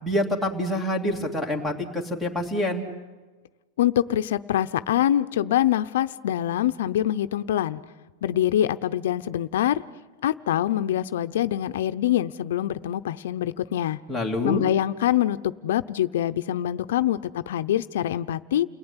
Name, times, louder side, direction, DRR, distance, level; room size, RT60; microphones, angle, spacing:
voice 1, 0.0-2.9 14.1-14.6, left 1 dB, ahead, 5 dB, 2.8 m, -26 dB
voice 2, 3.8-7.8 8.2-9.8 10.2-14.0 14.4-18.7, left 12 dB, 80° left, 12 dB, 0.8 m, -24 dB
29.5 x 18.5 x 9.9 m, 1.3 s
supercardioid pair, 160°, 0 cm